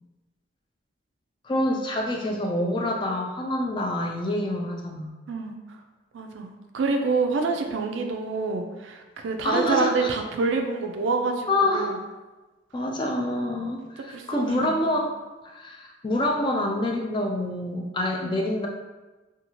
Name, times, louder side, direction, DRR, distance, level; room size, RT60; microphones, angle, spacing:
voice 1, 1.4-5.1 9.4-10.1 11.5-12.0 12.7-15.0 15.4-18.7, left 1 dB, 25° left, 1 dB, 0.3 m, -26 dB
voice 2, 6.1-12.0 14.1-14.8 18.2-18.3, right 4 dB, 65° right, 4 dB, 0.3 m, -27 dB
2.6 x 2.3 x 2.9 m, 1.2 s
head